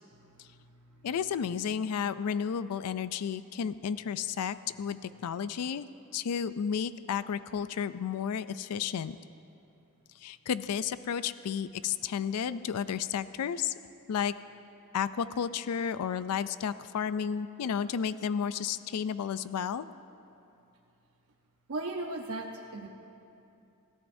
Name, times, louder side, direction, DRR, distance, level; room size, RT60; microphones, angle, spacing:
voice 1, 0.1-1.1 21.7-22.9, right 2 dB, 70° right, 1 dB, 0.9 m, -38 dB
voice 2, 1.0-5.8 6.1-9.2 10.2-13.7 14.1-14.3 14.9-19.9, left 7 dB, 90° left, 14 dB, 0.4 m, -32 dB
27.0 x 14.0 x 2.7 m, 2.7 s
head